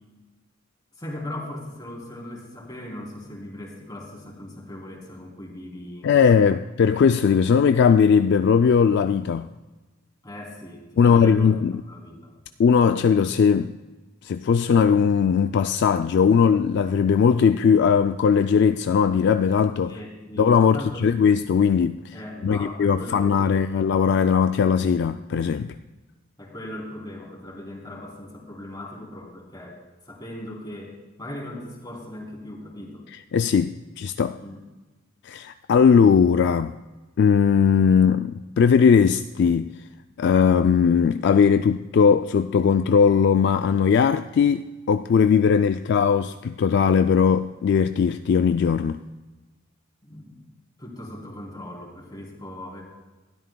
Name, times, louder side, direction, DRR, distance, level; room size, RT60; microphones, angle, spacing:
voice 1, 1.0-6.6 10.2-11.5 11.9-12.3 19.9-21.2 22.1-23.7 26.4-29.8 30.0-33.1 34.4-34.6 50.0-50.5 50.8-52.8, left 1 dB, 20° left, 3.0 m, -38 dB
voice 2, 6.0-9.5 11.0-11.8 12.6-13.7 14.2-20.0 20.4-22.1 22.4-25.7 33.3-33.7 34.0-34.4 35.3-36.7 37.2-39.7 40.2-49.0, left 6 dB, 55° left, 0.3 m, -19 dB
20.0 x 12.5 x 2.3 m
head